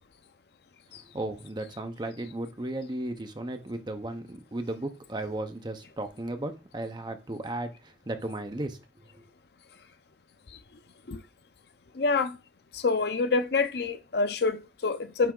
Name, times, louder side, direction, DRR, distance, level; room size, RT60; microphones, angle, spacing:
voice 1, 1.1-8.8 9.2-9.3, right 1 dB, 25° right, 0.7 m, -35 dB
voice 2, 12.0-12.4 12.7-15.3, left 4 dB, 60° left, 0.6 m, -27 dB
9.3 x 3.4 x 3.8 m
head